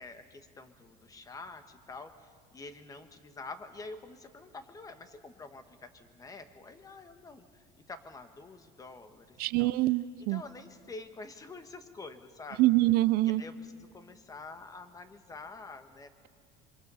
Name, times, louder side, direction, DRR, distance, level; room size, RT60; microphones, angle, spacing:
voice 1, 0.0-9.7 10.2-12.6 13.2-16.3, left 3 dB, 20° left, 9 dB, 1.3 m, -47 dB
voice 2, 9.4-10.4 12.6-13.4, right 18 dB, 55° right, 16 dB, 0.5 m, -25 dB
26.5 x 23.0 x 5.6 m, 2.1 s
cardioid pair, 145°, 19 cm